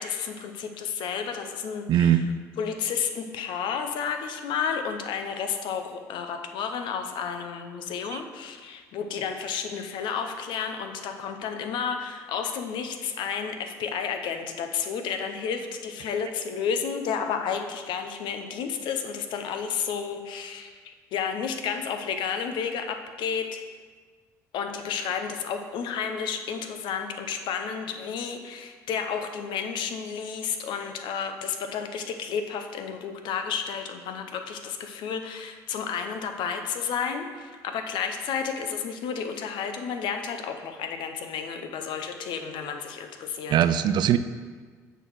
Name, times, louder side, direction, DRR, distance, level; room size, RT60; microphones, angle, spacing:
voice 1, 0.0-2.2 2.6-23.6 24.5-43.5, left 6 dB, 65° left, 6 dB, 0.8 m, -31 dB
voice 2, 1.9-2.2 8.1-8.2 43.5-44.2, right 10 dB, 55° right, 12 dB, 0.4 m, -21 dB
6.6 x 4.0 x 6.3 m, 1.5 s
hypercardioid pair, 65°, 9 cm